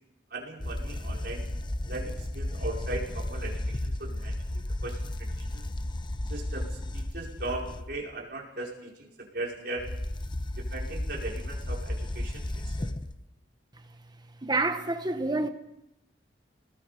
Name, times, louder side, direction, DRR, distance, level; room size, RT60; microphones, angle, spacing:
voice 1, 0.3-1.5 1.8-5.6 6.3-9.9 10.6-12.9, right 2 dB, 60° right, 5.2 m, -38 dB
sound 1, 0.6-8.0 9.8-13.2, left 1 dB, 25° left, 0.8 m, -34 dB
voice 2, 14.4-15.5, right 2 dB, 25° right, 1.2 m, -27 dB
27.5 x 19.5 x 5.2 m
head